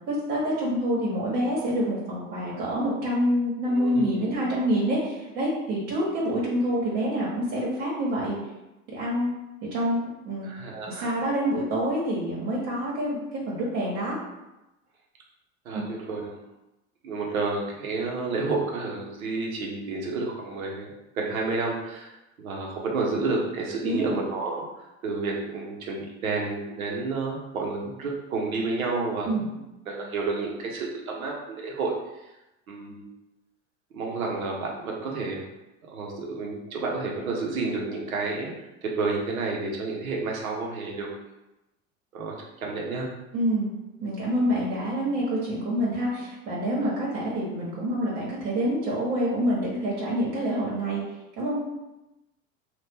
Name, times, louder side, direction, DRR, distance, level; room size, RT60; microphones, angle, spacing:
voice 1, 0.1-8.3 8.9-9.3 9.7-10.5 10.9-13.2 13.5-14.1 15.7-15.8 23.8-24.2 29.3-29.5 43.3-43.7 44.0-51.0 51.4-51.6, equal, 60° right, -6 dB, 1.2 m, -27 dB
voice 2, 3.7-4.2 10.4-11.1 15.6-16.4 17.0-22.1 22.4-24.6 25.0-29.4 29.9-31.9 32.7-33.1 33.9-35.4 35.9-38.5 38.8-41.1 42.1-43.1, right 3 dB, 90° right, -1 dB, 0.9 m, -30 dB
2.8 x 2.4 x 3.5 m, 0.96 s
hypercardioid pair, 90°, 41 cm